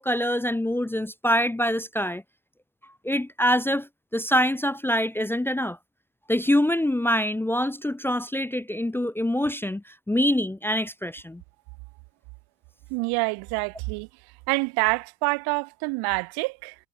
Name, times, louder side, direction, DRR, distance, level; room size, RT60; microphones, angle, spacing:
voice 1, 0.0-2.2 3.0-5.8 6.3-11.4, equal, 5° left, 0.5 m, -25 dB
voice 2, 12.9-14.1 14.5-16.7, right 31 dB, 85° right, 1.6 m, -26 dB
supercardioid pair, 95°, 37 cm